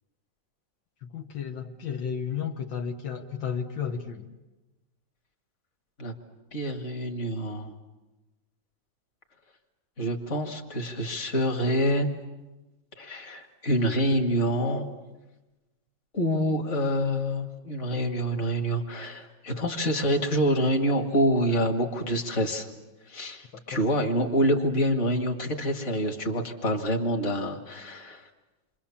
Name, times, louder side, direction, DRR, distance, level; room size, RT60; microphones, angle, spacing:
voice 1, 1.0-4.3 23.7-23.8, left 7 dB, 80° left, 2 dB, 2.0 m, -33 dB
voice 2, 6.5-7.7 10.0-12.1 13.0-14.9 16.1-22.7 23.0-28.3, equal, 40° left, 3 dB, 2.3 m, -26 dB
28.5 x 24.5 x 7.3 m, 1.1 s
omnidirectional pair, 2.0 m